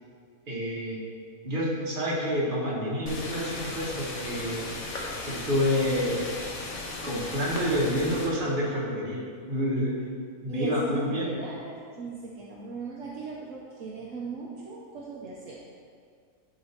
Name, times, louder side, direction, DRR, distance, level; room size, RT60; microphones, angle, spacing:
voice 1, 0.5-1.0 1.4-4.6 5.3-6.2 7.0-9.2 9.5-9.9 10.4-11.3, equal, 35° right, -5 dB, 1.6 m, -28 dB
sound 1, 3.1-8.3, left 2 dB, 75° left, 1.5 m, -36 dB
voice 2, 10.5-10.8 11.0-15.6, right 4 dB, 70° right, -4 dB, 1.1 m, -39 dB
10.5 x 4.0 x 4.3 m, 2.1 s
omnidirectional pair, 1.5 m